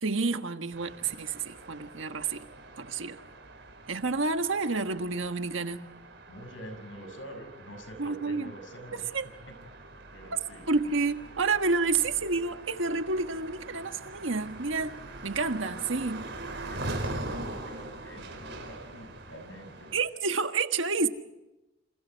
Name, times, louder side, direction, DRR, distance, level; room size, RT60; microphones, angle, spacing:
voice 1, 0.0-2.4 2.8-3.2 3.9-5.8 8.0-8.5 9.1-9.2 10.7-16.3 19.9-21.1, right 4 dB, 80° right, 1.5 m, -29 dB
sound 1, 0.7-20.0, right 2 dB, 60° right, 5.1 m, -42 dB
voice 2, 6.3-9.2 9.5-9.6 10.1-10.7 16.6-19.9, equal, 80° left, 6.5 m, -46 dB
28.5 x 28.0 x 4.7 m
head